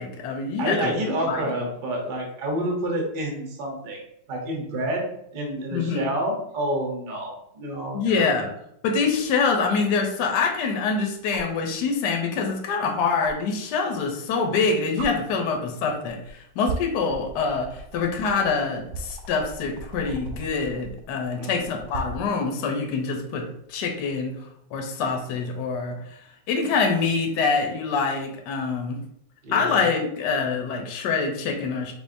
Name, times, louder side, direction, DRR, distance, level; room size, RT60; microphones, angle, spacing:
voice 1, 0.0-1.4 5.7-6.0 7.9-8.5 8.8-24.3 24.7-26.2 26.5-29.0 29.5-31.9, left 4 dB, 70° left, 2 dB, 1.2 m, -25 dB
voice 2, 0.6-4.0 4.3-8.3 21.4-21.7 29.4-29.9, right 1 dB, 40° right, 0 dB, 0.9 m, -29 dB
sound 1, 9.1-9.2 11.3-11.6 13.2-13.3 14.5-14.6 15.0-15.1 16.0-16.3 16.6-22.3 24.0-24.1, right 3 dB, 85° right, 1.3 m, -37 dB
4.5 x 3.6 x 2.6 m, 0.74 s
omnidirectional pair, 2.0 m